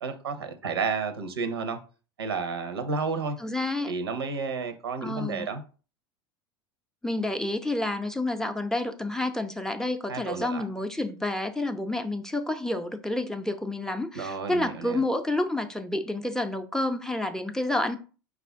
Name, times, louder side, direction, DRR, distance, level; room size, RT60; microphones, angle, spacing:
voice 1, 0.0-1.8 2.2-3.4 3.9-5.6 10.1-10.6 14.1-15.0, right 4 dB, 90° right, 0.7 m, -31 dB
voice 2, 3.4-3.9 5.0-5.5 7.0-18.0, left 2 dB, 5° left, 0.5 m, -29 dB
4.8 x 2.4 x 3.5 m
hypercardioid pair, 85°, 13 cm